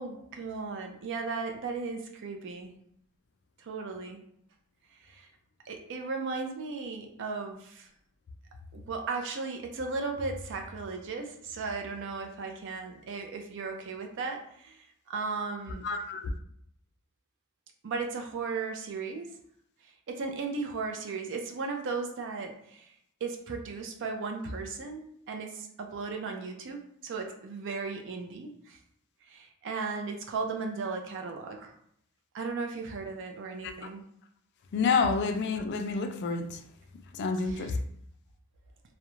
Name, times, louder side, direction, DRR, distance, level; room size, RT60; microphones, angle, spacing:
voice 1, 0.0-2.7 3.6-4.2 5.0-5.3 5.7-7.9 8.7-15.9 17.8-19.3 20.1-22.9 23.2-28.8 29.3-31.7 32.3-34.0 37.4-37.8, right 4 dB, 60° right, 3 dB, 0.4 m, -36 dB
voice 2, 15.8-16.3 33.6-33.9 34.7-36.6 37.2-37.7, left 4 dB, 50° left, 6 dB, 0.3 m, -29 dB
2.4 x 2.0 x 2.9 m, 0.69 s
head